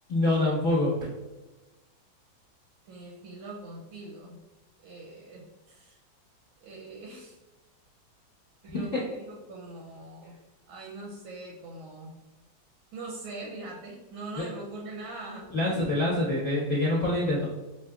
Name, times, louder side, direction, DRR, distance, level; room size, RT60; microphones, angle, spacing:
voice 1, 0.1-0.9 14.4-14.5 15.5-17.4, left 1 dB, 40° left, -9 dB, 1.1 m, -25 dB
voice 2, 2.8-4.4 4.8-6.0 6.6-7.4 8.6-10.4 10.7-12.2 12.9-15.5, right 2 dB, 85° right, -2 dB, 1.5 m, -42 dB
5.0 x 2.7 x 2.3 m, 1.1 s
omnidirectional pair, 2.2 m